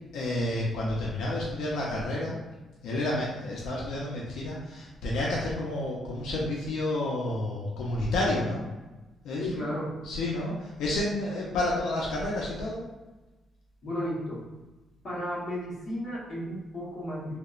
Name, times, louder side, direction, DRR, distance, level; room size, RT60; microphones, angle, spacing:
voice 1, 0.1-2.4 2.8-8.6 9.2-9.7 10.0-12.8, left 1 dB, 85° left, -4 dB, 0.5 m, -30 dB
voice 2, 9.4-10.0 13.8-14.4 15.0-17.4, equal, 40° left, -7 dB, 0.9 m, -33 dB
2.9 x 2.0 x 2.3 m, 1.1 s
cardioid pair, 155°, 0 cm